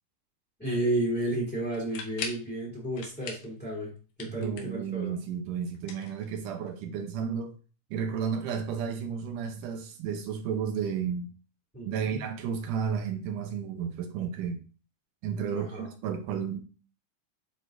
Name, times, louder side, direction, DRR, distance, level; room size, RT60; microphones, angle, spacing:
voice 1, 0.6-3.9 4.2-5.1 11.7-12.2 15.5-15.9, right 1 dB, 5° left, 2.2 m, -32 dB
sound 1, 1.7-2.5 2.9-3.5 3.8-4.9 5.7-6.7, left 6 dB, 75° left, 2.6 m, -40 dB
voice 2, 4.2-7.5 7.9-11.3 11.9-14.6 15.2-16.6, right 7 dB, 80° right, 2.2 m, -32 dB
9.3 x 4.1 x 2.5 m
omnidirectional pair, 3.7 m